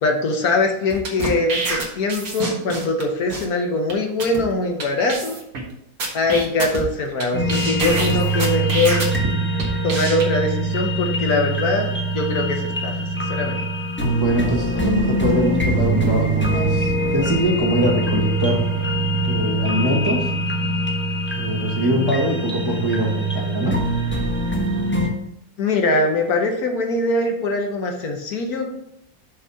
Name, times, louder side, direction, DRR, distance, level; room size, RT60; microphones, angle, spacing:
voice 1, 0.0-5.4 6.1-9.1 9.8-12.9 13.3-13.6 25.6-28.7, left 2 dB, 65° left, 3 dB, 1.4 m, -22 dB
sound 1, 0.9-3.0 3.3-3.4 3.9-4.0 4.2-4.4 4.8-4.9 5.1-5.6 6.0-7.2 7.5-9.2 9.6-10.2, right 3 dB, 60° right, 1.9 m, -27 dB
sound 2, 7.3-25.1, right 1 dB, 10° left, 1.0 m, -23 dB
voice 2, 14.0-18.6 19.3-20.3 21.3-23.8, equal, 15° right, -3 dB, 1.1 m, -23 dB
6.2 x 4.1 x 5.5 m, 0.77 s
omnidirectional pair, 1.7 m